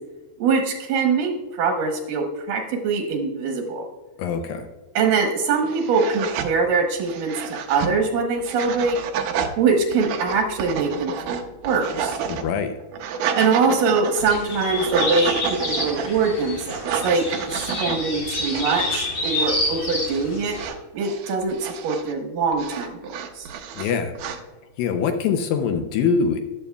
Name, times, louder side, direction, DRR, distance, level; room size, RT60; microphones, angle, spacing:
voice 1, 0.4-3.9 5.0-9.0 9.6-12.2 13.3-20.6 20.9-23.5, right 4 dB, 70° right, 2 dB, 2.2 m, -23 dB
voice 2, 4.2-4.7 12.3-12.7 23.7-24.1 24.8-26.4, left 6 dB, 80° left, 7 dB, 2.0 m, -23 dB
sound 1, 5.1-5.2 5.6-6.5 7.0-7.9 8.4-9.5 9.9-12.4 12.8-14.3 14.7-16.1 16.6-18.0 18.4-18.9 19.2-19.5 19.8-20.2 20.5-22.1 22.5-24.4, right 7 dB, 85° right, 1.7 m, -30 dB
sound 2, 14.2-20.7, left 2 dB, 40° left, 3.0 m, -28 dB
14.0 x 10.5 x 2.3 m, 1.2 s
omnidirectional pair, 4.7 m